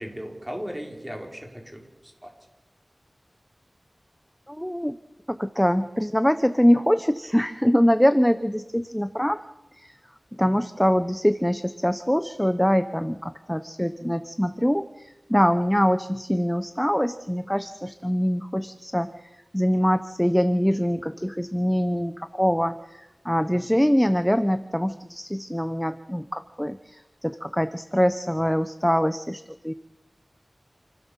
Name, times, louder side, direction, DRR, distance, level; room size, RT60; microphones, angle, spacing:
voice 1, 0.0-2.3, equal, 10° right, 1 dB, 5.4 m, -37 dB
voice 2, 4.5-5.0 5.3-9.4 9.7-9.9 10.4-19.1 19.5-29.7, equal, 5° left, 11 dB, 0.9 m, -23 dB
28.5 x 15.5 x 7.4 m, 0.98 s
wide cardioid pair, 70°, 0 cm